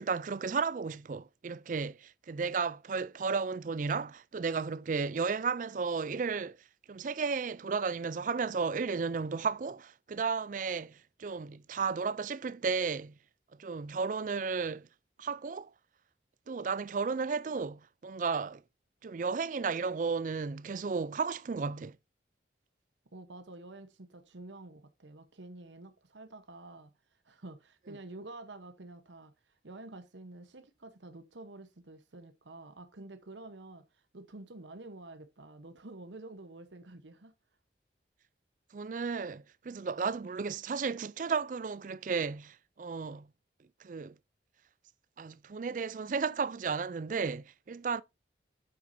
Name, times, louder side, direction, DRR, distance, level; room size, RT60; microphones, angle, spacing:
voice 1, 0.0-6.6 6.9-13.1 13.6-14.9 15.2-15.7 16.5-18.6 19.0-22.0 38.7-43.3 43.8-44.1 45.2-48.0, right 5 dB, 45° right, 0.4 m, -33 dB
voice 2, 23.1-26.9 27.2-37.3, right 2 dB, 85° right, 1.0 m, -49 dB
8.7 x 7.9 x 2.7 m
head